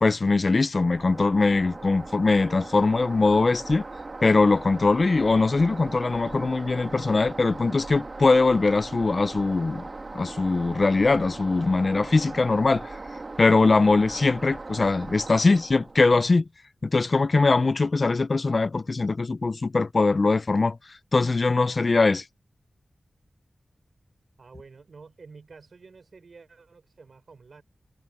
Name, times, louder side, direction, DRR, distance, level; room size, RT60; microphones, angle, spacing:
voice 1, 0.0-3.8 4.2-9.8 10.1-13.0 13.4-16.4 16.8-20.8 21.1-22.2, left 3 dB, 50° left, 0.5 m, -21 dB
sound 1, 0.8-16.3, right 3 dB, 45° right, 1.9 m, -39 dB
voice 2, 24.4-27.6, right 4 dB, 70° right, 5.3 m, -49 dB
wide cardioid pair, 70°, 0 cm